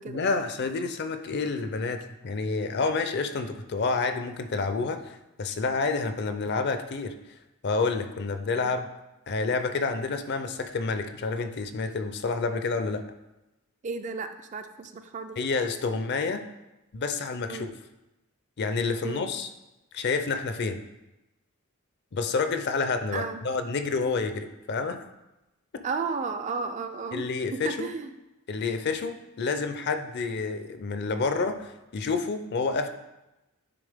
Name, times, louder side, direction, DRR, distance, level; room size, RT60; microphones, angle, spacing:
voice 1, 0.1-7.1 7.6-8.9 9.3-13.0 15.4-16.4 16.9-17.7 18.6-19.5 19.9-20.8 22.1-25.0 25.7-25.8 27.1-27.9 28.5-32.9, left 4 dB, 50° left, 8 dB, 0.5 m, -29 dB
voice 2, 13.8-15.4 17.5-17.7 19.0-19.3 23.1-23.4 25.8-28.1, right 4 dB, 35° right, 8 dB, 0.3 m, -34 dB
9.8 x 3.5 x 3.5 m, 0.98 s
head